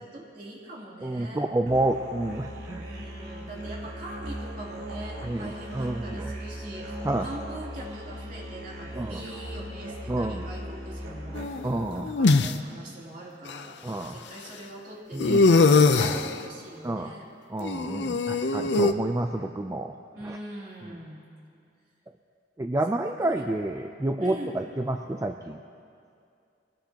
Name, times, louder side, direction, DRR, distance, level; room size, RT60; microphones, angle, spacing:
voice 1, 0.0-1.5 2.8-13.8 14.1-17.3 20.1-21.2 22.9-23.5 24.2-24.6, right 1 dB, 45° right, -4 dB, 3.0 m, -42 dB
voice 2, 1.0-2.8 5.2-6.3 7.0-7.3 8.9-9.2 10.1-10.5 11.6-12.1 13.8-14.2 15.1-15.5 16.8-17.1 17.5-19.9 20.2-20.4 22.6-25.6, right 1 dB, 15° right, 5 dB, 0.4 m, -29 dB
Musical instrument, 1.7-11.8, equal, 70° right, 2.7 m, -38 dB
sound 1, 11.3-12.5 13.5-13.6 15.2-16.3 17.6-18.9, left 3 dB, 70° left, 0.6 m, -21 dB
23.0 x 17.5 x 2.9 m, 2.4 s
head